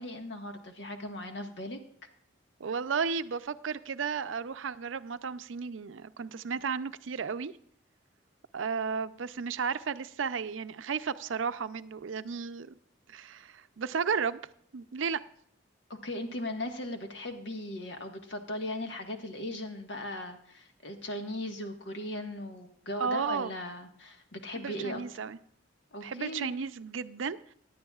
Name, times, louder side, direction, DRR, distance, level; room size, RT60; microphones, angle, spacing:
voice 1, 0.0-1.8 16.0-25.0 25.9-26.6, left 1 dB, 65° left, 4 dB, 1.5 m, -38 dB
voice 2, 2.6-7.5 8.5-12.7 13.1-14.4 14.7-15.2 23.0-23.5 24.6-25.4 26.0-27.5, right 6 dB, 85° right, 12 dB, 0.5 m, -33 dB
17.5 x 11.0 x 2.4 m, 0.65 s
head